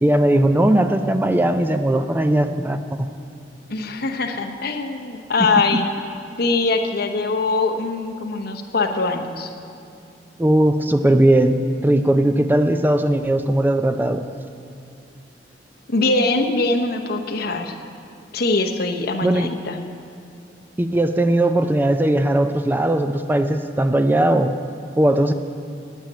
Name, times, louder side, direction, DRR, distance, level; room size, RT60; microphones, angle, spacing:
voice 1, 0.0-3.1 10.4-14.2 19.2-19.5 20.8-24.6 25.0-25.3, right 1 dB, 10° right, 8 dB, 0.4 m, -18 dB
voice 2, 3.7-5.9 6.4-9.5 15.9-17.8 18.3-19.8, left 3 dB, 60° left, 5 dB, 0.9 m, -22 dB
8.8 x 8.8 x 8.8 m, 2.4 s
head